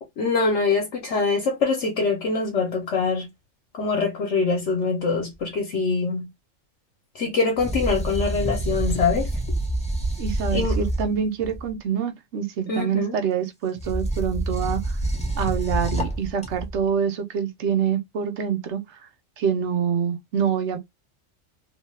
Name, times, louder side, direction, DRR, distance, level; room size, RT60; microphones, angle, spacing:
voice 1, 0.2-3.3 3.8-6.3 7.1-9.3 10.5-10.8 12.7-13.2, left 4 dB, 65° left, 1.1 m, -24 dB
sound 1, 7.6-11.7 13.8-16.8, right 1 dB, 5° left, 0.6 m, -27 dB
voice 2, 10.2-15.0 15.4-19.1 19.4-20.8, right 7 dB, 65° right, 0.9 m, -26 dB
2.8 x 2.3 x 3.1 m
omnidirectional pair, 1.3 m